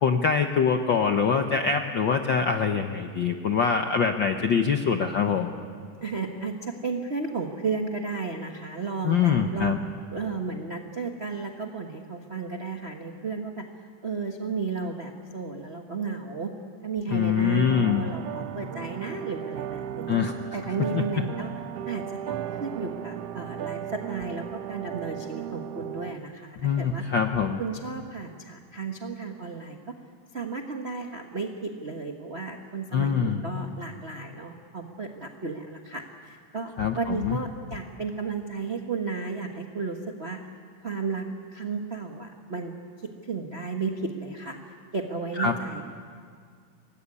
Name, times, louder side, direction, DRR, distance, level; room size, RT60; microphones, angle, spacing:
voice 1, 0.0-5.5 9.0-9.8 17.1-18.0 20.1-20.3 20.9-21.0 26.6-27.6 32.9-33.4 36.8-37.4 45.4-45.6, left 6 dB, 65° left, 5 dB, 1.1 m, -24 dB
voice 2, 6.0-9.8 10.1-13.7 14.0-16.5 16.8-20.2 20.5-21.5 21.9-27.0 27.6-29.9 30.3-40.4 40.8-42.7 43.3-44.6 44.9-45.8, right 4 dB, 50° right, 2 dB, 0.7 m, -33 dB
sound 1, 17.7-26.2, right 10 dB, 70° right, 1.6 m, -36 dB
25.0 x 19.5 x 9.8 m, 2.1 s
omnidirectional pair, 3.5 m